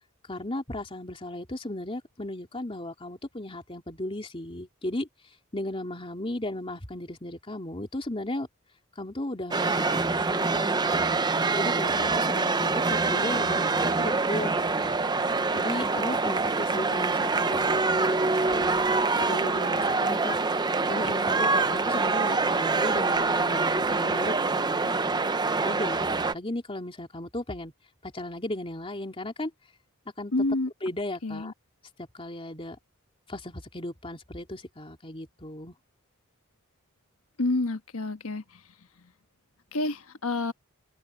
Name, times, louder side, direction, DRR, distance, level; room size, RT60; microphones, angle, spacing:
voice 1, 0.3-5.1 5.5-8.5 9.0-11.1 11.5-14.5 14.8-14.9 15.5-20.4 20.8-25.3 25.6-27.7 28.0-29.5 30.2-30.3 30.8-31.5 32.1-32.8 33.3-35.7, left 1 dB, 25° left, 3.1 m, -35 dB
sound 1, 9.5-26.3, right 3 dB, 20° right, 0.6 m, -25 dB
voice 2, 30.3-30.7 31.2-31.5 37.4-38.6 39.7-40.5, left 2 dB, 85° left, 1.4 m, -28 dB
open air
head